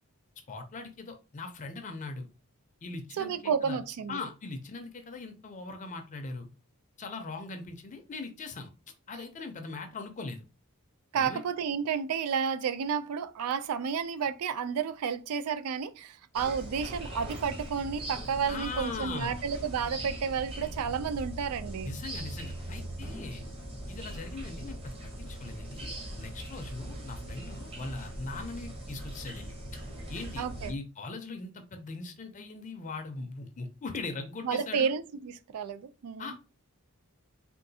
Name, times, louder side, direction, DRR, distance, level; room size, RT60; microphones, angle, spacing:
voice 1, 0.5-2.3 2.8-3.8 4.1-6.5 7.0-8.7 9.1-10.4 11.1-11.4 18.5-19.4 21.8-23.4 23.9-29.8 30.1-34.9 36.2-36.4, left 3 dB, 35° left, 0.4 m, -40 dB
voice 2, 3.2-4.2 11.1-21.9 30.4-30.8 34.4-36.3, right 6 dB, 90° right, 0.4 m, -31 dB
sound 1, 16.3-30.7, right 1 dB, 25° right, 0.8 m, -40 dB
3.7 x 2.4 x 2.6 m
head